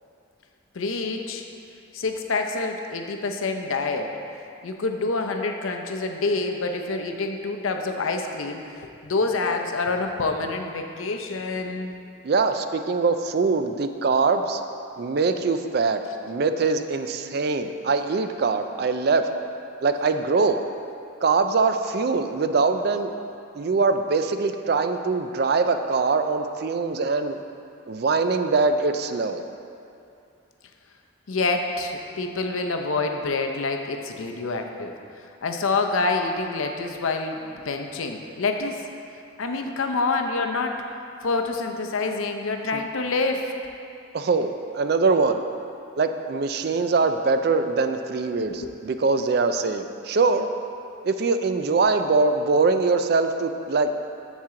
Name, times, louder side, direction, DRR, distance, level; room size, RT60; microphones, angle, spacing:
voice 1, 0.7-1.4 1.9-4.1 4.6-11.9 31.3-34.9 35.4-38.9 39.4-40.8 41.2-43.5 48.5-48.7, left 3 dB, 85° left, 4 dB, 0.6 m, -27 dB
voice 2, 12.2-14.7 15.0-19.3 19.8-20.6 21.2-23.1 23.5-27.4 27.9-29.4 42.7-42.8 44.1-45.4 46.0-50.5 51.0-53.9, right 4 dB, 50° right, 8 dB, 0.4 m, -23 dB
7.3 x 7.3 x 3.7 m, 2.6 s
head